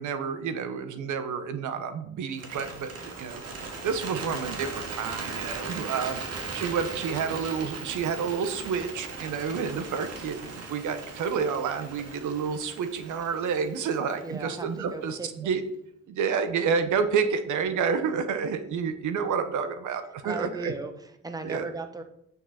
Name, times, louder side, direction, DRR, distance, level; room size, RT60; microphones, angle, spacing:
voice 1, 0.0-2.9 3.2-3.4 3.8-6.2 6.5-15.6 16.1-20.7 21.4-21.7, right 6 dB, 75° right, 10 dB, 1.0 m, -29 dB
Bird, 2.3-14.5, right 4 dB, 55° right, 2.0 m, -38 dB
voice 2, 14.2-15.5 20.2-22.0, right 2 dB, 10° right, 7 dB, 1.0 m, -37 dB
8.7 x 6.8 x 4.3 m, 0.75 s
cardioid pair, 90°, 30 cm